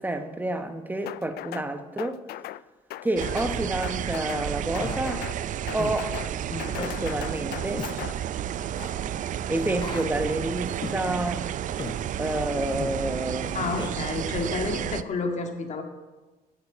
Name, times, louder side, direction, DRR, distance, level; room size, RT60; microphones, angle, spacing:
voice 1, 0.0-2.2 3.0-5.3 5.7-6.2 6.8-7.9 9.5-11.5 12.2-13.7, right 1 dB, 10° right, 1.2 m, -29 dB
sound 1, 1.1-1.7 2.0-2.6 2.9-3.5 3.8-4.5 4.7-5.4 5.7-6.3 6.6-8.1, left 15 dB, 70° left, 0.4 m, -38 dB
sound 2, 3.2-15.0, right 10 dB, 50° right, 0.5 m, -31 dB
Human voice, 4.8-5.0 5.8-6.0 6.8-7.0 7.8-7.9 8.7-8.9 9.8-10.1 10.8-11.0 11.8-12.0 12.8-13.0 13.8-13.9, left 5 dB, 30° left, 1.0 m, -35 dB
voice 2, 13.5-15.8, left 3 dB, 45° left, 1.9 m, -30 dB
9.9 x 7.9 x 8.9 m
cardioid pair, 110°, 17 cm